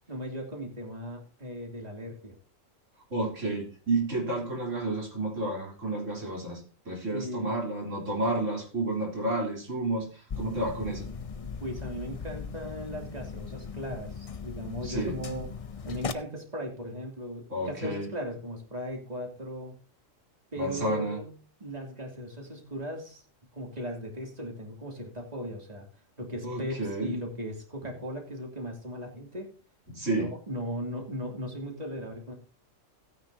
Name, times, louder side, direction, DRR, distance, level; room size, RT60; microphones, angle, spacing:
voice 1, 0.1-2.3 7.1-7.5 11.6-15.5 15.8-19.7 20.5-21.3 21.6-23.2 23.5-25.9 26.2-26.7 27.0-29.5 30.1-32.3, equal, 30° right, 1 dB, 2.9 m, -37 dB
voice 2, 3.1-11.1 14.8-15.2 17.5-18.1 20.6-21.2 26.4-27.1 29.9-30.3, right 2 dB, 70° right, 0 dB, 3.9 m, -31 dB
sound 1, 10.3-16.1, left 5 dB, 35° left, 0.6 m, -39 dB
16.0 x 9.8 x 2.8 m, 0.37 s
omnidirectional pair, 1.3 m